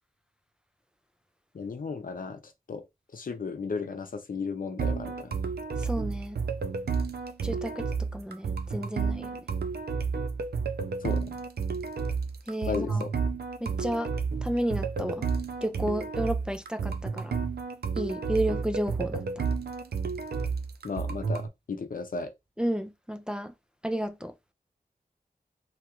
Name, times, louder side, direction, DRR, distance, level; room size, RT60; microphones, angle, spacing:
voice 1, 1.5-2.4 2.7-2.8 3.1-5.3 11.0-11.2 12.7-13.1 20.8-22.3, left 4 dB, 60° left, 0.6 m, -34 dB
sound 1, 4.8-21.5, right 5 dB, 90° right, 0.4 m, -31 dB
voice 2, 5.9-6.4 7.4-7.8 8.1-9.3 12.5-13.0 13.6-14.1 14.4-15.2 15.6-17.3 18.0-19.2 22.6-23.5 23.8-24.3, right 1 dB, 5° right, 0.3 m, -31 dB
2.9 x 2.3 x 2.9 m
wide cardioid pair, 90°, 16 cm